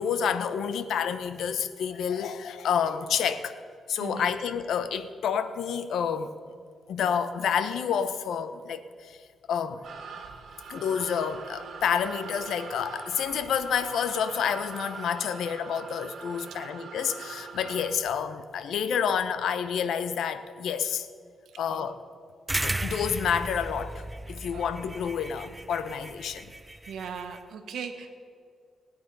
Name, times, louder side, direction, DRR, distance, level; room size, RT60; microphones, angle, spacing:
voice 1, 0.0-3.5 3.9-6.3 6.9-9.2 9.5-9.8 10.7-21.1 21.6-22.0 22.6-26.5, left 7 dB, 85° left, 11 dB, 0.8 m, -29 dB
voice 2, 4.0-4.3 21.4-21.9 24.5-24.6 26.9-28.2, right 6 dB, 85° right, 6 dB, 1.3 m, -39 dB
sound 1, 9.8-17.9, right 5 dB, 65° right, 2.0 m, -42 dB
sound 2, 22.5-27.4, right 1 dB, 15° right, 0.5 m, -35 dB
19.0 x 9.3 x 5.4 m, 2.2 s
cardioid pair, 95°, 0 cm